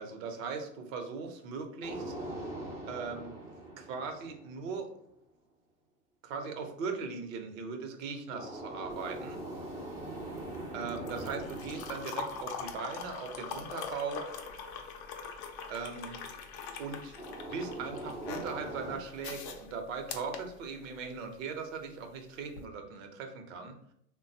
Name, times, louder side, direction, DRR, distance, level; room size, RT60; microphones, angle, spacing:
voice 1, 0.0-2.1 2.9-3.3 3.8-4.9 6.2-9.4 10.7-14.4 15.7-16.2 16.8-17.2 17.4-23.8, right 5 dB, 55° right, 5 dB, 0.8 m, -39 dB
sound 1, 1.8-4.9 8.3-13.7 17.2-19.0, right 1 dB, 5° right, 0.5 m, -42 dB
sound 2, 8.9-21.2 22.5-22.6, left 5 dB, 45° left, 0.6 m, -43 dB
3.4 x 2.2 x 2.7 m, 0.71 s
hypercardioid pair, 110°, 47 cm